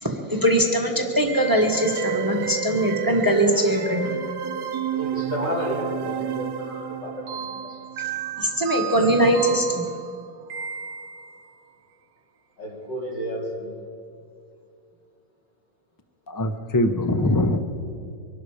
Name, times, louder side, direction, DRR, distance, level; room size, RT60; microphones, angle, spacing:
voice 1, 0.0-4.2 8.4-9.9, equal, 15° right, 2 dB, 1.4 m, -21 dB
sound 1, 1.3-11.4, right 8 dB, 75° right, 1.3 m, -31 dB
voice 2, 4.9-7.8 12.6-13.7, equal, 85° left, -3 dB, 4.2 m, -31 dB
voice 3, 16.3-17.6, left 1 dB, 30° left, 8 dB, 0.3 m, -22 dB
24.0 x 12.0 x 5.0 m, 2.5 s
omnidirectional pair, 1.9 m